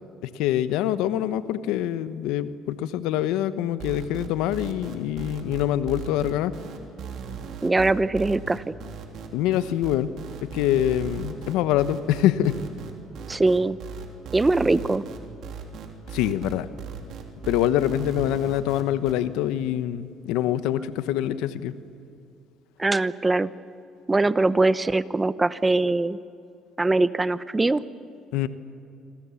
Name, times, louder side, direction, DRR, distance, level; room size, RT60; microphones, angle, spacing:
voice 1, 0.2-6.5 9.3-10.1 10.4-12.6 16.1-16.7 17.5-21.8 28.3-28.5, left 12 dB, 85° left, 13 dB, 1.0 m, -25 dB
sound 1, 3.8-19.1, right 7 dB, 65° right, 3.2 m, -37 dB
voice 2, 7.6-8.7 13.3-13.8 14.3-15.0 22.8-23.5 24.1-26.2 26.8-27.8, right 2 dB, 20° right, 16 dB, 0.9 m, -22 dB
27.0 x 25.0 x 7.2 m, 2.5 s
supercardioid pair, 80°, 0 cm